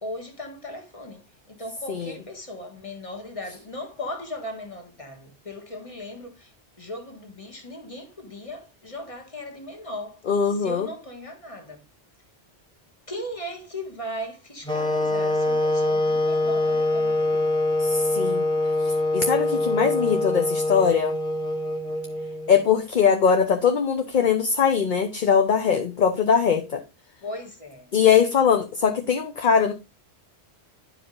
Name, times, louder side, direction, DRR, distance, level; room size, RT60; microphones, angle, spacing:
voice 1, 0.0-6.5 6.8-10.2 10.5-11.8 13.1-17.6 27.2-27.9, left 1 dB, 30° left, 1.7 m, -37 dB
voice 2, 10.3-10.9 17.8-18.4 18.8-21.2 22.5-26.8 27.9-29.7, left 7 dB, 50° left, 0.9 m, -21 dB
sound 1, 14.6-22.7, left 1 dB, 5° left, 1.3 m, -24 dB
11.0 x 5.0 x 3.8 m
omnidirectional pair, 1.1 m